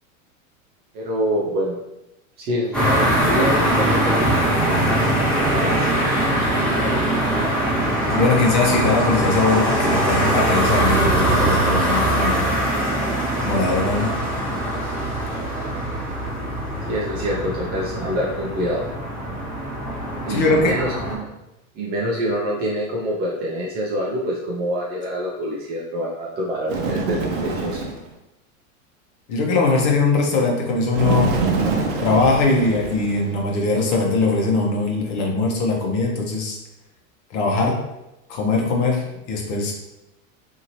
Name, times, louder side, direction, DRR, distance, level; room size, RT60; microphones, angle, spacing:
voice 1, 0.9-1.8 2.4-4.1 4.5-4.6 5.3-5.9 16.9-18.8 20.2-21.3 21.8-27.8, equal, 25° right, -4 dB, 0.3 m, -26 dB
sound 1, 2.7-21.2, right 1 dB, 5° left, 1.0 m, -22 dB
voice 2, 8.1-12.5 13.4-14.2 20.3-20.7 29.3-31.4 32.0-36.6 37.3-37.8 38.3-39.7, left 3 dB, 55° left, 0 dB, 0.9 m, -21 dB
Bird, 26.7-28.1 30.9-33.4, right 4 dB, 55° right, 0.7 m, -25 dB
2.9 x 2.8 x 2.6 m, 0.91 s
supercardioid pair, 130°, 42 cm